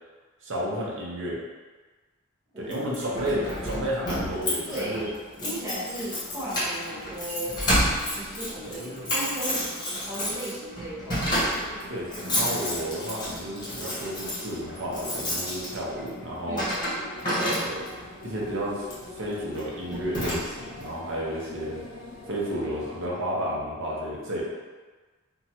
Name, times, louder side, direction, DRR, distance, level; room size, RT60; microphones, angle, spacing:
voice 1, 0.4-1.4 2.6-5.1 8.6-9.1 11.9-16.6 17.4-18.0 18.2-18.9 19.1-21.8 22.3-24.4, equal, 65° right, -4 dB, 0.7 m, -32 dB
Keys jangling, 2.7-18.1 18.8-19.1 19.5-19.7 19.9-20.8, equal, 20° left, 1.0 m, -30 dB
voice 2, 4.7-5.1 5.4-7.6 8.1-9.7 10.0-11.4 16.5-17.1, right 1 dB, 15° right, -11 dB, 1.0 m, -36 dB
sound 1, 11.0-23.1, left 2 dB, 90° left, 0.5 m, -45 dB
3.0 x 2.3 x 2.8 m, 1.3 s
head